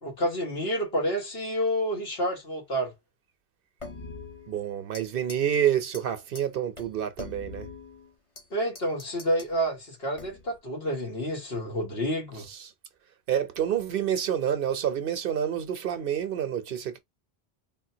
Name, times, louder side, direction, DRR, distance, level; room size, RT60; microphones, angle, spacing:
voice 1, 0.0-2.9 8.5-12.5, equal, 75° left, 1.9 m, -29 dB
sound 1, 3.8-5.0 5.3-5.6 5.9-6.0 6.4-6.5 6.8-8.5 8.8-9.5 10.2-10.6, left 3 dB, 40° left, 1.0 m, -43 dB
voice 2, 4.5-7.7 12.5-12.7 13.3-17.0, right 9 dB, 65° right, 0.8 m, -28 dB
3.8 x 2.2 x 2.7 m
omnidirectional pair, 1.0 m